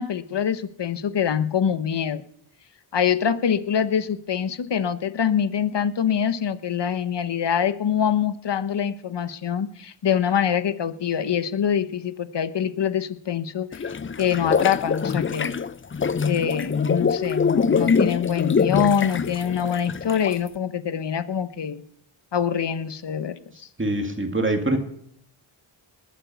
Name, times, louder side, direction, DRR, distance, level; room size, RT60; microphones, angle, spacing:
voice 1, 0.0-2.2 2.9-13.8 14.2-15.6 16.3-21.8 22.3-23.7, left 8 dB, 60° left, 13 dB, 1.0 m, -24 dB
sound 1, 13.7-20.5, left 5 dB, 25° left, 0.5 m, -24 dB
voice 2, 23.8-24.8, right 1 dB, 25° right, 4 dB, 2.4 m, -23 dB
20.0 x 8.6 x 6.9 m, 0.71 s
cardioid pair, 65°, 48 cm